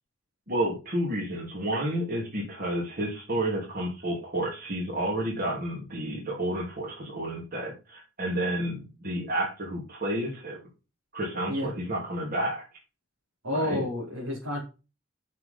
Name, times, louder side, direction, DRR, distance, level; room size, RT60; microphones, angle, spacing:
voice 1, 0.5-10.6 11.1-12.6 13.5-13.8, right 1 dB, 45° right, -3 dB, 2.9 m, -30 dB
voice 2, 13.4-14.6, left 1 dB, 85° right, -5 dB, 3.9 m, -30 dB
7.3 x 6.3 x 5.3 m, 0.30 s
head